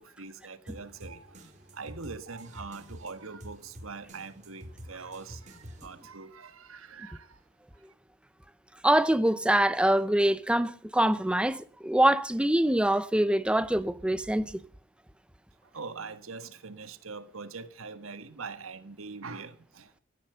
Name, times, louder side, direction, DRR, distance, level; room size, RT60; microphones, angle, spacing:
voice 1, 0.0-7.4 7.7-7.9 15.6-20.0, right 4 dB, 80° right, 1.5 m, -43 dB
sound 1, 0.7-6.2, equal, 35° right, 2.7 m, -48 dB
voice 2, 8.8-14.6, right 1 dB, 5° right, 0.6 m, -24 dB
15.5 x 11.5 x 6.8 m
head